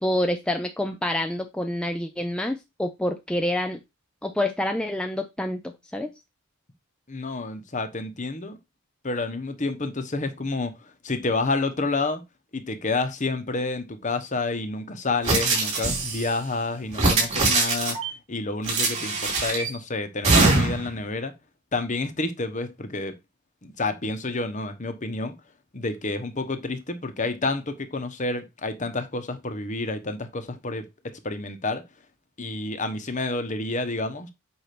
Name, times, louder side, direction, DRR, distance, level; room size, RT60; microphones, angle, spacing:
voice 1, 0.0-3.8 4.2-6.1, left 1 dB, 5° left, 0.5 m, -27 dB
voice 2, 7.1-8.6 9.0-10.7 11.0-12.2 12.5-18.0 18.3-21.3 21.7-23.1 23.6-25.3 25.7-30.8 31.2-31.8 32.4-34.3, left 3 dB, 35° left, 1.1 m, -29 dB
sound 1, 15.2-16.3 16.9-18.1 18.6-19.7 20.2-20.9, right 3 dB, 30° right, 3.7 m, -22 dB
8.4 x 2.8 x 5.9 m
head